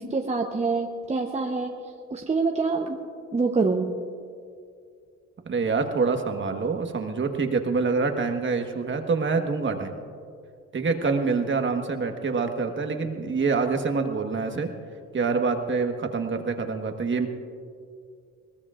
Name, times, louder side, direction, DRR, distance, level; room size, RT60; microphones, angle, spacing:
voice 1, 0.0-1.8 2.1-3.0 3.3-3.9, right 4 dB, 20° right, 2 dB, 0.9 m, -26 dB
voice 2, 5.4-9.9 10.7-14.7 15.1-17.3, right 4 dB, 40° right, 5 dB, 1.4 m, -26 dB
21.5 x 19.0 x 2.5 m, 2.3 s
cardioid pair, 90°, 30 cm